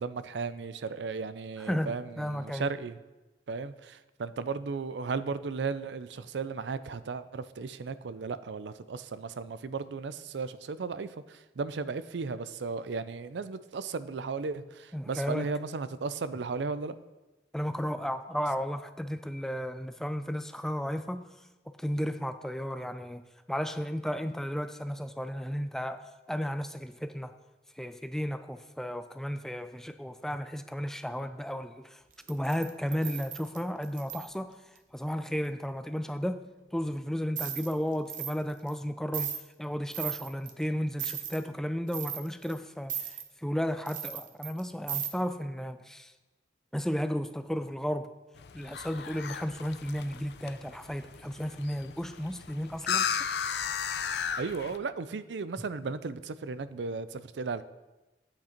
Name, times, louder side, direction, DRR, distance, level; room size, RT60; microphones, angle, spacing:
voice 1, 0.0-3.0 3.5-17.0 54.4-57.6, right 4 dB, 85° right, 14 dB, 0.5 m, -35 dB
voice 2, 1.6-2.7 14.9-15.5 17.5-21.3 21.8-27.3 27.8-32.0 32.3-34.6 34.9-36.4 36.7-39.3 39.6-46.1 46.7-48.1 48.5-53.2, equal, 5° left, 10 dB, 0.4 m, -34 dB
sound 1, 32.2-34.3 37.4-37.7 38.1-38.4 38.7-38.8 39.1-39.4 39.9-40.5 41.0-41.4 41.9-42.6 42.9-43.3 43.9-44.6 44.9-45.1, right 10 dB, 50° right, 0.8 m, -36 dB
sound 2, 48.4-54.8, left 7 dB, 70° left, 0.5 m, -35 dB
8.8 x 8.3 x 4.4 m, 1.1 s
head